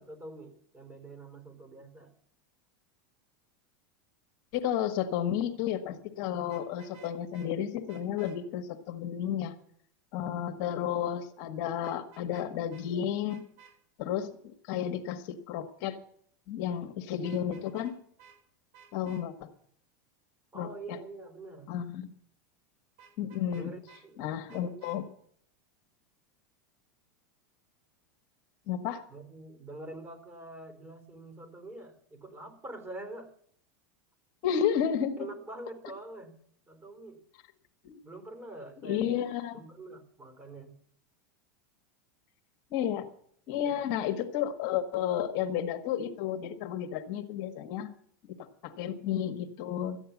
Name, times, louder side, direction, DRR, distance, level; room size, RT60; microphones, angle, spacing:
voice 1, 0.0-2.1 20.5-21.7 23.5-24.9 29.1-33.3 35.2-36.3 36.7-37.2 38.0-39.2 39.5-40.7 43.5-43.9, right 2 dB, 20° right, 5 dB, 4.4 m, -45 dB
voice 2, 4.5-9.6 10.1-13.4 14.0-16.0 16.5-17.9 18.9-19.5 20.6-21.0 21.7-22.1 23.2-23.7 24.2-25.0 28.7-29.0 34.4-35.3 37.8-38.0 38.8-39.5 42.7-43.1 43.5-47.9 48.4-50.0, left 9 dB, 55° left, 5 dB, 1.6 m, -32 dB
Vehicle horn car horn honking, 6.4-7.5 7.9-8.4 11.8-12.5 12.7-12.8 13.3-13.7 17.2-17.9 18.2-18.4 18.7-19.2 23.0-24.0 24.5-25.0, right 7 dB, 65° right, 7.2 m, -56 dB
14.0 x 10.0 x 7.3 m, 0.63 s
supercardioid pair, 120°, 10 cm